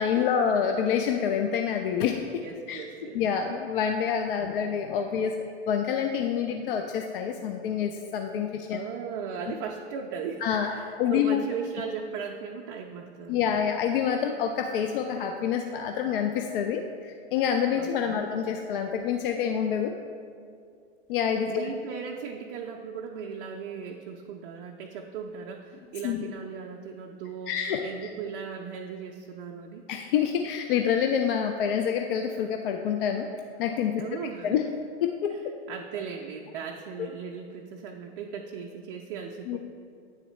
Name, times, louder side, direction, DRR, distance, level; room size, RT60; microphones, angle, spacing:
voice 1, 0.0-2.2 2.7-2.8 3.1-5.3 5.7-8.8 10.4-10.7 11.0-11.5 13.3-19.9 21.1-21.7 26.0-26.3 27.5-27.8 29.9-33.3 33.6-34.0 34.4-34.6 35.0-35.5 37.0-37.1 39.5-39.6, left 8 dB, 55° left, 4 dB, 0.4 m, -27 dB
voice 2, 2.4-3.2 4.4-4.8 8.7-13.5 17.8-18.3 21.5-27.6 27.8-29.8 34.0-34.6 35.3-39.6, right 6 dB, 40° right, 1 dB, 0.5 m, -38 dB
9.2 x 4.0 x 3.0 m, 2.3 s
hypercardioid pair, 110°, 34 cm